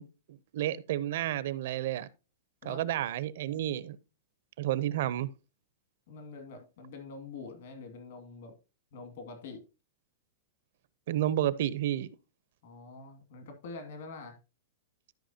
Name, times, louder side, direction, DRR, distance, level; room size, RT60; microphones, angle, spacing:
voice 1, 0.0-2.1 2.6-4.0 4.6-5.3 11.1-12.1, right 12 dB, 65° right, 0.7 m, -31 dB
voice 2, 6.1-8.5 8.9-9.6 12.6-14.4, left 3 dB, 65° left, 2.3 m, -45 dB
13.0 x 5.6 x 2.8 m
supercardioid pair, 160°, 0 cm